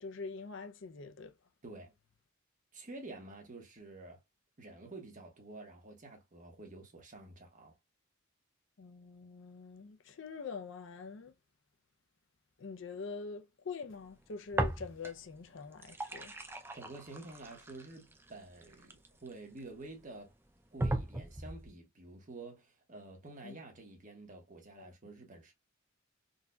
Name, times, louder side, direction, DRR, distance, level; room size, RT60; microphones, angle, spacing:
voice 1, 0.0-1.3 8.8-11.3 12.6-16.4 23.4-23.6 24.8-24.9, left 4 dB, 65° left, 0.5 m, -44 dB
voice 2, 1.6-1.9 2.7-4.2 4.6-7.7 16.7-20.3 20.7-25.5, right 2 dB, 40° right, 1.2 m, -49 dB
sound 1, 14.5-15.3 15.6-19.6 20.2-20.3 20.8-21.7, right 1 dB, 10° right, 0.4 m, -37 dB
3.9 x 2.7 x 2.2 m
head